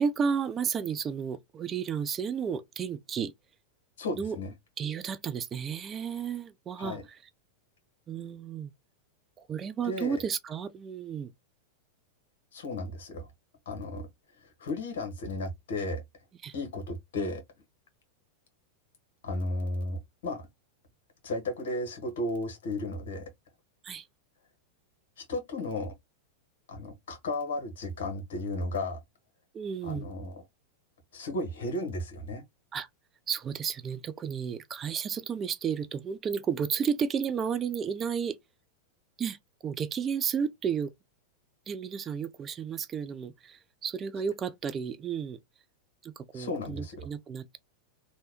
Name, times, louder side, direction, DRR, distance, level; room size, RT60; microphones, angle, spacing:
voice 1, 0.0-3.3 4.2-4.4 4.8-7.2 8.1-8.7 9.5-11.3 16.4-16.5 23.8-24.1 29.5-30.1 32.7-32.9 33.3-38.4 39.2-39.4 39.6-40.9 41.7-45.4 46.0-47.6, right 7 dB, 30° right, 0.5 m, -32 dB
voice 2, 4.0-4.5 6.8-7.0 9.8-10.2 12.5-13.3 13.6-14.1 14.4-16.0 16.5-17.4 19.2-20.5 21.2-23.3 25.2-25.9 26.7-29.0 29.8-30.4 31.1-32.4 46.3-47.1, left 2 dB, 70° left, 1.2 m, -34 dB
3.3 x 2.2 x 3.0 m
hypercardioid pair, 105°, 0 cm